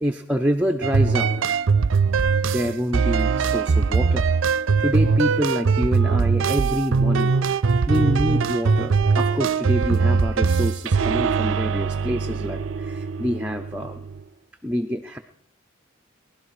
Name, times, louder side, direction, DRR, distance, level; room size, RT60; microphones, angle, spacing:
voice 1, 0.0-1.3 2.5-4.3 4.8-7.4 7.9-14.0 14.6-15.2, equal, 5° right, 4 dB, 0.5 m, -26 dB
sound 1, 0.8-14.2, right 5 dB, 75° right, 0.5 m, -21 dB
19.5 x 12.0 x 4.9 m, 0.77 s
head